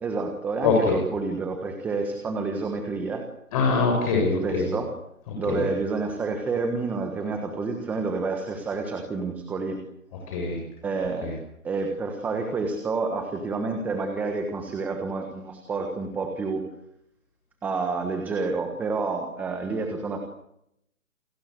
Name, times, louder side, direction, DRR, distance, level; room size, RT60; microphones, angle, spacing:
voice 1, 0.0-3.3 4.4-4.9 5.4-9.8 10.8-11.3 11.6-16.6 17.6-20.2, right 4 dB, 5° right, 5 dB, 1.3 m, -29 dB
voice 2, 0.6-1.0 3.5-4.7 5.5-5.6 10.3-10.6 11.2-11.3, left 4 dB, 25° left, 0 dB, 7.4 m, -23 dB
29.0 x 23.0 x 8.0 m, 0.77 s
hypercardioid pair, 160°, 43 cm